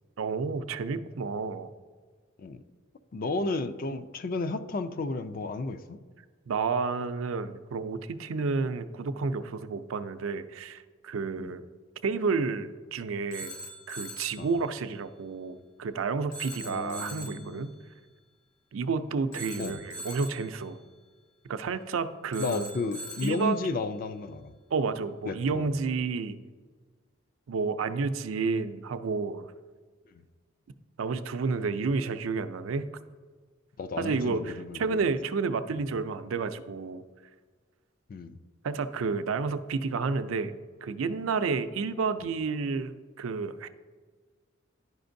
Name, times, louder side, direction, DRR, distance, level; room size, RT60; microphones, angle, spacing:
voice 1, 0.2-1.7 6.5-11.6 12.0-13.6 13.9-17.7 18.7-20.8 21.5-22.7 23.2-23.6 24.7-26.4 27.5-29.5 31.0-32.9 34.0-37.0 38.6-40.5 40.8-43.7, right 4 dB, 80° right, 10 dB, 0.4 m, -30 dB
voice 2, 3.1-6.0 11.4-11.5 14.4-14.5 16.6-17.6 19.6-19.8 22.4-24.5 25.3-25.7 33.8-35.0 38.1-38.4, left 3 dB, 45° left, 11 dB, 0.3 m, -33 dB
Telephone, 13.3-14.5 16.3-17.5 19.3-20.5 22.3-23.5, equal, 85° left, 0.9 m, -41 dB
11.0 x 5.1 x 2.6 m, 1.5 s
head